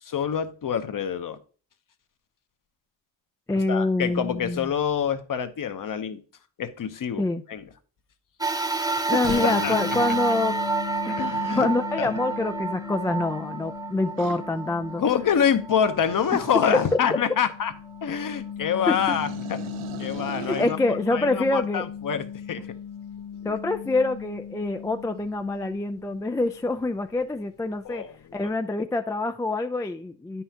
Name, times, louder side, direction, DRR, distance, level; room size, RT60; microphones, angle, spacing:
voice 1, 0.0-1.4 3.7-6.2 6.6-7.6 8.8-10.0 11.0-11.7 12.0-12.1 15.0-17.7 18.0-19.6 20.0-20.8 21.1-22.7 23.4-23.5 27.8-28.4, left 8 dB, 40° left, 10 dB, 0.9 m, -26 dB
voice 2, 3.5-4.7 7.2-7.4 9.1-10.5 11.1-11.2 11.6-15.0 18.9-19.0 20.5-21.8 23.4-28.0 28.3-30.4, left 2 dB, 5° left, 8 dB, 0.4 m, -26 dB
sound 1, 8.4-17.0 17.6-17.7 18.8-18.9, right 4 dB, 10° right, 0.8 m, -30 dB
sound 2, 9.2-26.7, left 7 dB, 75° left, 1.3 m, -37 dB
sound 3, 14.2-14.4 16.0-17.0 18.8-20.8, right 10 dB, 75° right, 0.9 m, -39 dB
9.0 x 5.6 x 2.9 m, 0.39 s
supercardioid pair, 75°, 49 cm